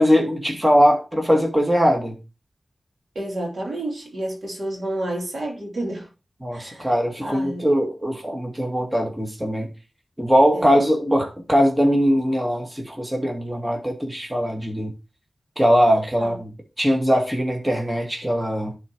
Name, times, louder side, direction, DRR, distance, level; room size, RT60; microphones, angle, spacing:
voice 1, 0.0-2.1 6.4-9.7 10.2-14.9 15.6-16.5 16.8-18.7, equal, 15° right, 1.9 m, -20 dB
voice 2, 3.1-6.1 6.5-6.9 7.2-7.7 10.5-10.8 16.2-16.4, right 1 dB, 70° right, 2.8 m, -30 dB
11.0 x 4.2 x 3.0 m
cardioid pair, 55°, 0 cm